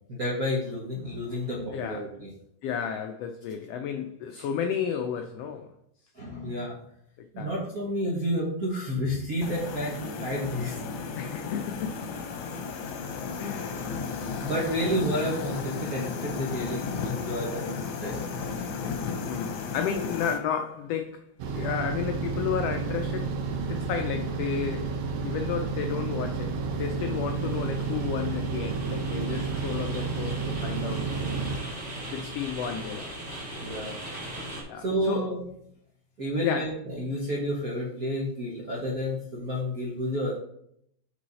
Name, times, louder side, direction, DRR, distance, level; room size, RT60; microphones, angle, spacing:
voice 1, 0.1-2.3 4.4-4.5 6.1-6.8 7.3-10.8 14.4-17.6 18.0-18.5 26.7-26.8 33.6-34.0 34.8-35.4 36.2-40.4, equal, 50° right, 1.0 m, -30 dB
voice 2, 2.6-5.7 7.2-7.5 11.2-12.0 13.4-13.8 19.2-24.9 25.2-31.3 32.1-33.1 34.7-35.3 36.4-36.7, left 7 dB, 90° left, 1.4 m, -32 dB
sound 1, 9.4-20.4, left 5 dB, 70° left, 1.8 m, -34 dB
sound 2, 21.4-31.6, right 4 dB, 70° right, 1.9 m, -31 dB
sound 3, 26.7-34.6, right 1 dB, 20° right, 2.1 m, -40 dB
6.2 x 5.4 x 4.0 m
omnidirectional pair, 3.4 m